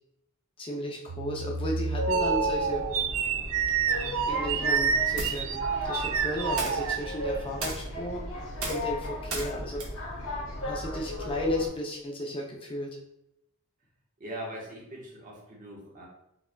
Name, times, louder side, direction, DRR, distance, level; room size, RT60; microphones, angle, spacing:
voice 1, 0.6-2.8 3.9-8.2 8.6-9.8 10.6-12.9, equal, 25° left, -1 dB, 0.5 m, -34 dB
sound 1, 1.1-7.5, right 7 dB, 65° right, 0.3 m, -29 dB
sound 2, 2.0-11.7, left 2 dB, 80° left, 1.2 m, -34 dB
sound 3, 5.1-11.2, right 3 dB, 85° right, 1.1 m, -40 dB
voice 2, 14.2-16.1, right 1 dB, 40° right, -3 dB, 1.1 m, -41 dB
4.8 x 3.3 x 2.2 m, 0.82 s
head